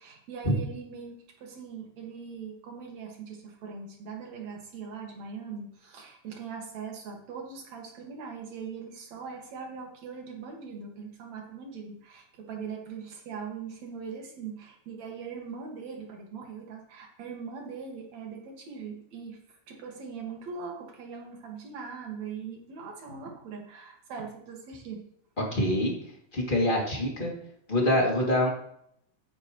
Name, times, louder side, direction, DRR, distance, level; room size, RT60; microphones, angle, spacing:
voice 1, 0.0-19.4 19.7-25.0, right 5 dB, 65° right, 0 dB, 3.4 m, -41 dB
voice 2, 25.4-25.9 26.3-27.3 27.7-28.5, left 1 dB, 15° left, -2 dB, 2.8 m, -25 dB
14.5 x 9.4 x 3.3 m, 0.70 s
omnidirectional pair, 3.4 m